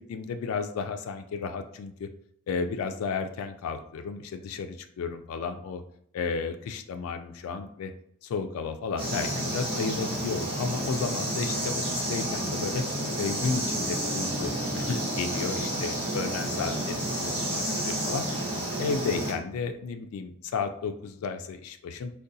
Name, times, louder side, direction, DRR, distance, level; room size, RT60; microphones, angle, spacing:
voice 1, 0.0-2.1 2.5-5.8 6.1-7.9 8.2-12.8 13.2-18.3 18.8-22.1, left 5 dB, 90° left, 8 dB, 0.3 m, -33 dB
sound 1, 9.0-19.3, right 1 dB, 30° right, 1.2 m, -30 dB
3.7 x 2.2 x 2.6 m, 0.70 s
head